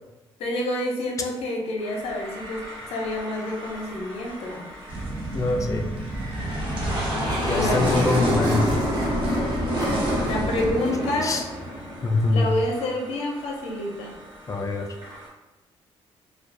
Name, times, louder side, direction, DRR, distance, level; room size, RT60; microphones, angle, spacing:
voice 1, 0.4-4.7 7.5-8.1 10.2-11.4 12.3-14.2, left 1 dB, 80° left, 0 dB, 0.6 m, -28 dB
sound 1, 1.8-15.3, equal, 85° right, 1.1 m, -42 dB
sound 2, 4.9-10.7, right 2 dB, 65° right, 0.6 m, -32 dB
voice 2, 5.3-5.9 7.5-8.8 11.2-11.4 12.0-12.6 14.5-14.9, left 2 dB, 35° left, 4 dB, 0.3 m, -24 dB
sound 3, 6.1-12.5, equal, 40° right, 1.1 m, -26 dB
2.4 x 2.3 x 2.4 m, 1.0 s
cardioid pair, 100°, 10 cm